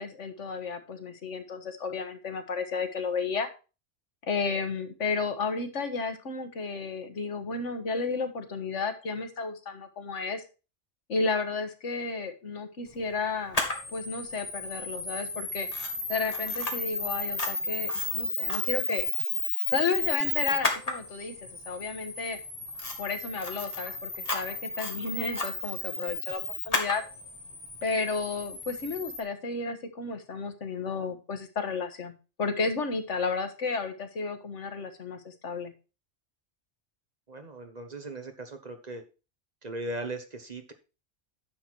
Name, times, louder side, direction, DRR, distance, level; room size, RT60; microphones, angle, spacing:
voice 1, 0.0-3.5 4.2-10.4 11.1-13.6 13.9-15.7 16.1-19.1 19.7-22.4 23.0-27.0 27.8-32.1 32.4-35.7, left 4 dB, 85° left, 7 dB, 1.7 m, -32 dB
Camera, 13.5-29.2, left 2 dB, 30° left, 1.8 m, -33 dB
voice 2, 37.3-39.0 39.6-40.7, right 2 dB, 35° right, 6 dB, 1.3 m, -38 dB
10.0 x 6.9 x 4.6 m, 0.32 s
omnidirectional pair, 1.2 m